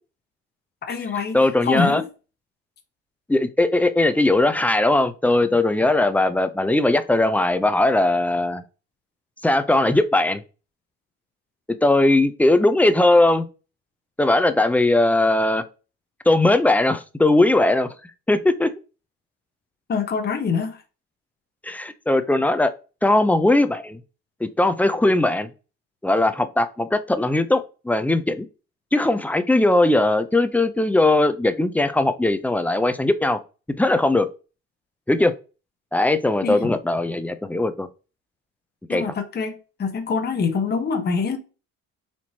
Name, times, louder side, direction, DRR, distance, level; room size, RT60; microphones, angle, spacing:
voice 1, 0.8-2.1 19.9-20.8 36.4-36.7 38.9-41.4, left 5 dB, 35° left, 0.8 m, -25 dB
voice 2, 1.3-2.0 3.3-8.6 9.4-10.4 11.8-13.4 14.2-15.6 16.3-17.9 18.3-18.7 21.6-22.7 23.0-24.0 24.4-25.5 26.0-28.5 28.9-33.4 33.8-34.3 35.1-35.3 35.9-37.9 38.9-39.0, left 2 dB, 5° left, 0.4 m, -19 dB
4.3 x 3.0 x 2.8 m
supercardioid pair, 90°, 30 cm